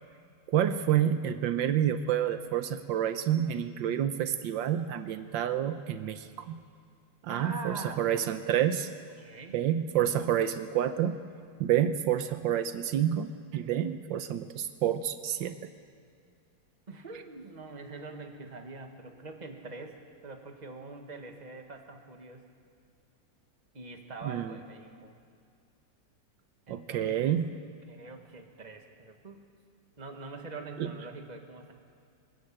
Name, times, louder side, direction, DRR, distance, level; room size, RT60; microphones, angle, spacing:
voice 1, 0.5-6.6 7.2-8.9 9.5-11.2 11.6-15.6 24.2-24.6 26.7-27.5 30.8-30.9, right 10 dB, 80° right, 10 dB, 1.5 m, -28 dB
voice 2, 7.3-8.0 9.2-9.6 16.9-22.4 23.7-25.1 26.7-27.4 27.9-29.4 30.0-31.7, right 3 dB, 25° right, 4 dB, 1.6 m, -44 dB
23.0 x 14.0 x 8.7 m, 2.3 s
omnidirectional pair, 2.0 m